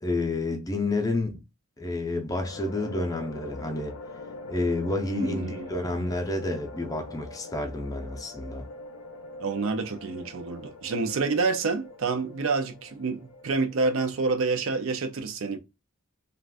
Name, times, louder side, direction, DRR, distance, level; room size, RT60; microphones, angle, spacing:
voice 1, 0.0-1.4 1.8-4.0 4.5-8.6, left 2 dB, 15° left, 0.4 m, -29 dB
sound 1, 2.4-14.3, left 3 dB, 75° left, 0.5 m, -44 dB
voice 2, 5.1-5.7 9.4-15.6, right 4 dB, 75° right, 0.5 m, -28 dB
2.4 x 2.3 x 3.4 m
head